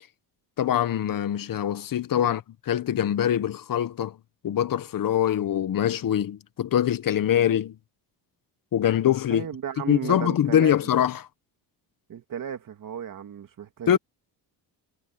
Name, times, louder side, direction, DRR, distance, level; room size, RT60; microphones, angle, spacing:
voice 1, 0.6-2.4 2.7-4.2 4.4-7.8 8.7-9.5 9.9-11.2 13.9-14.0, left 10 dB, 50° left, 1.4 m, -23 dB
voice 2, 9.3-10.8 12.1-14.0, right 8 dB, 50° right, 2.6 m, -35 dB
cardioid pair, 115°, 42 cm